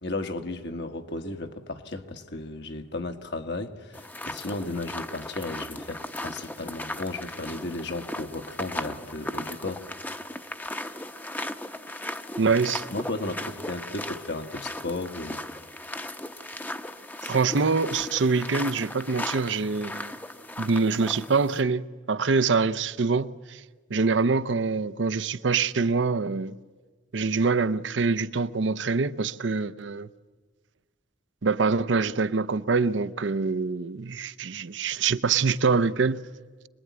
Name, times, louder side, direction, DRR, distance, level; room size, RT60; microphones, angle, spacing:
voice 1, 0.0-9.9 12.9-15.4, left 2 dB, 60° left, 1.6 m, -34 dB
sound 1, 3.9-21.6, left 1 dB, 10° left, 0.8 m, -37 dB
voice 2, 12.4-12.8 17.2-20.1 20.6-23.6 23.9-26.6 27.1-30.1 31.4-36.2, right 4 dB, 70° right, 0.7 m, -25 dB
25.0 x 20.5 x 9.6 m
head